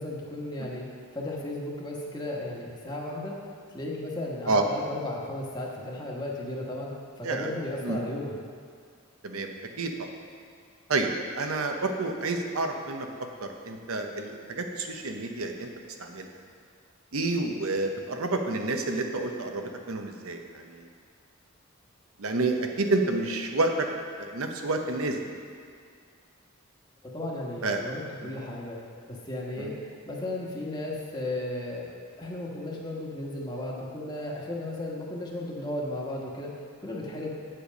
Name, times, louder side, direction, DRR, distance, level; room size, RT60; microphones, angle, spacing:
voice 1, 0.0-3.4 3.7-8.3 27.1-28.8 29.1-31.9 32.2-37.3, left 1 dB, 20° left, -3 dB, 1.2 m, -35 dB
voice 2, 9.2-10.1 10.9-11.1 11.4-15.7 16.0-16.3 17.1-20.8 22.2-23.9 24.2-25.2 27.6-27.8 28.2-28.3 29.6-29.7, right 3 dB, 80° right, 4 dB, 0.8 m, -29 dB
8.5 x 7.7 x 5.2 m, 2.1 s
head